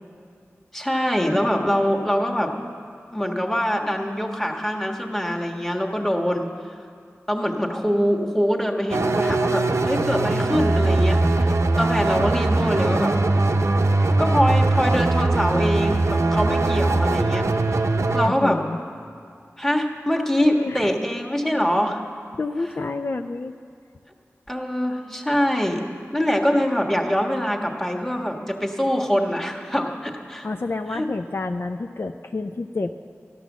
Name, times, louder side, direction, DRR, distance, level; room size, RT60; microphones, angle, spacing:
voice 1, 0.7-2.5 3.1-6.5 7.3-13.2 14.2-17.5 17.7-17.9 18.1-18.6 19.6-22.0 24.5-25.8 26.1-30.5 30.9-31.1, equal, 5° left, 1 dB, 1.5 m, -24 dB
sound 1, 8.9-18.3, right 2 dB, 75° right, 0.7 m, -21 dB
voice 2, 18.3-18.8 20.5-20.9 22.4-23.5 30.4-33.0, left 3 dB, 55° left, 6 dB, 0.5 m, -29 dB
14.0 x 11.0 x 7.3 m, 2.4 s
wide cardioid pair, 65°, 5 cm